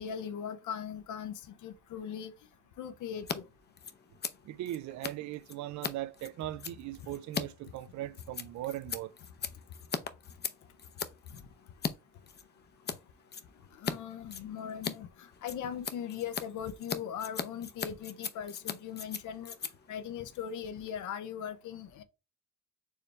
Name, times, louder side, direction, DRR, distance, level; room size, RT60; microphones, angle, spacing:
voice 1, 0.0-2.3 2.8-3.4 13.8-15.1 15.4-19.5 19.9-22.0, left 8 dB, 75° left, 0.8 m, -39 dB
Scissors, 3.1-3.4 3.6-11.9 12.2-13.0 13.3-13.9 14.2-21.0, left 6 dB, 35° left, 0.6 m, -39 dB
voice 2, 4.4-9.1, right 14 dB, 70° right, 0.5 m, -39 dB
4.6 x 3.4 x 3.2 m
cardioid pair, 90°, 30 cm